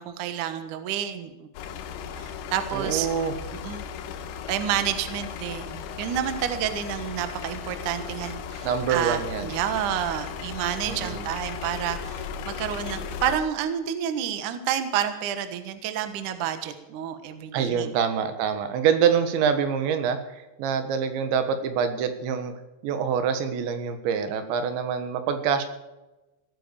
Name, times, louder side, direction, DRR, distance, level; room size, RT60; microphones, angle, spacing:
voice 1, 0.0-1.5 2.2-3.1 3.6-3.8 4.5-17.9, right 9 dB, 60° right, 9 dB, 2.3 m, -29 dB
sound 1, 1.6-13.4, left 7 dB, 85° left, 3.3 m, -36 dB
voice 2, 2.7-3.4 8.6-9.5 10.9-11.3 17.5-22.5 22.8-25.6, right 7 dB, 80° right, 9 dB, 3.8 m, -25 dB
18.0 x 9.4 x 7.0 m, 1.0 s
omnidirectional pair, 5.2 m